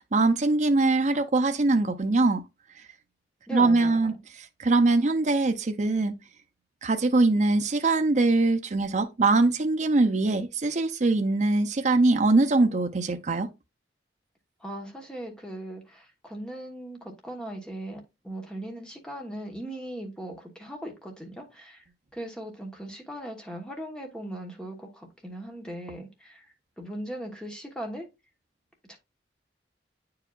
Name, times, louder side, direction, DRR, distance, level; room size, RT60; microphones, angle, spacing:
voice 1, 0.0-2.4 3.5-4.1 4.6-6.1 6.8-13.5, right 3 dB, 40° right, 0.6 m, -22 dB
voice 2, 3.5-4.2 14.6-21.8 22.1-26.4 26.8-28.1 28.8-29.0, right 1 dB, 5° left, 1.2 m, -39 dB
8.8 x 4.8 x 2.4 m
head